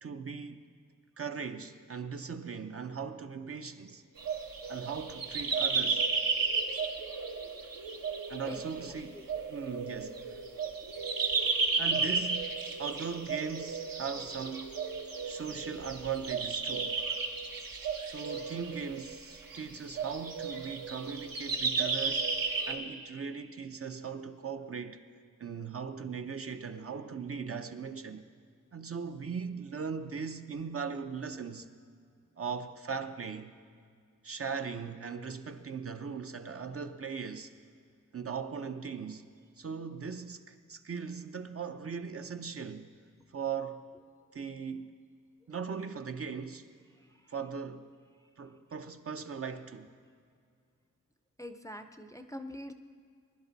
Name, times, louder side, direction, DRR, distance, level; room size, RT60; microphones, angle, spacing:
voice 1, 0.0-0.7 1.2-4.0 4.7-6.0 8.3-10.4 11.8-14.8 15.2-17.0 18.0-22.3 22.7-25.0 25.4-28.2 28.7-31.7 32.4-33.5 34.2-37.5 38.1-39.3 39.6-42.9 43.3-43.9 44.3-44.9 45.5-46.7 47.3-47.8 48.4-49.9, right 6 dB, 40° right, 0.6 m, -39 dB
sound 1, 4.2-22.8, right 4 dB, 75° right, 1.3 m, -33 dB
voice 2, 51.4-52.7, left 1 dB, 10° left, 0.5 m, -43 dB
20.5 x 11.0 x 4.0 m
wide cardioid pair, 105°, 34 cm